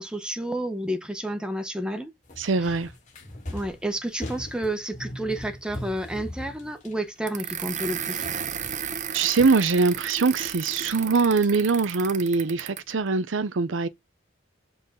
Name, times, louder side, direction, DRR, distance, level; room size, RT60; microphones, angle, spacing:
voice 1, 0.0-2.1 3.5-8.3, right 1 dB, 5° right, 1.1 m, -30 dB
sound 1, 2.2-7.8 8.1-10.2 10.6-11.9, left 1 dB, 40° left, 3.1 m, -41 dB
voice 2, 2.4-2.9 9.1-13.9, right 4 dB, 80° right, 0.6 m, -23 dB
sound 2, 7.3-12.9, right 8 dB, 40° right, 0.8 m, -34 dB
7.1 x 3.9 x 5.4 m
head